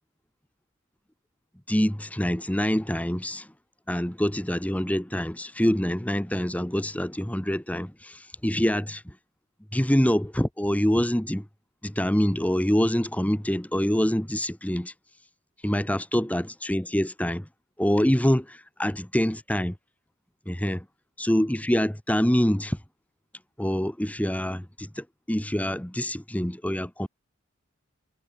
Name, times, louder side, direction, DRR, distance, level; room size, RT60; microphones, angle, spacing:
voice 1, 1.7-3.5 3.9-9.2 9.7-11.5 11.8-14.9 15.6-17.5 17.8-19.8 20.5-20.9 21.2-22.8 23.6-27.1, equal, 5° left, 1.2 m, -25 dB
head